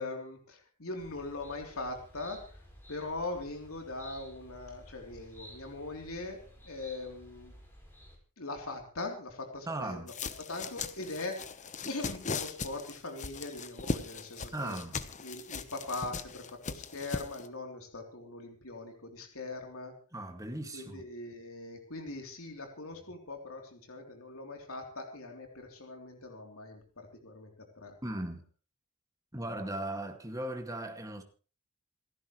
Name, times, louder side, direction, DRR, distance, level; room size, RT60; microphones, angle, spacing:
voice 1, 0.0-2.6 2.9-7.5 8.4-10.1 10.5-14.8 15.2-19.9 20.7-28.0, left 2 dB, 70° left, 3.4 m, -41 dB
sound 1, 1.0-8.2, equal, 10° left, 5.0 m, -53 dB
voice 2, 9.7-10.1 14.5-15.0 20.1-21.0 28.0-28.4 29.3-31.2, right 1 dB, 15° right, 2.1 m, -37 dB
sound 2, 10.1-17.5, left 4 dB, 35° left, 1.0 m, -39 dB
28.0 x 11.0 x 3.2 m
head